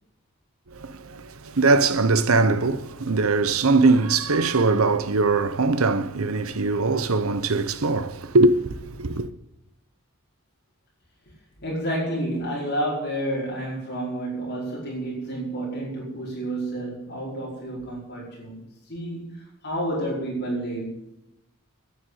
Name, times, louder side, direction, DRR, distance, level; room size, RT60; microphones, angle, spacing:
voice 1, 0.7-9.3, right 3 dB, 80° right, 0.9 m, -21 dB
voice 2, 11.6-18.6 18.9-20.9, right 1 dB, 50° left, 5.0 m, -30 dB
10.0 x 9.4 x 9.1 m
head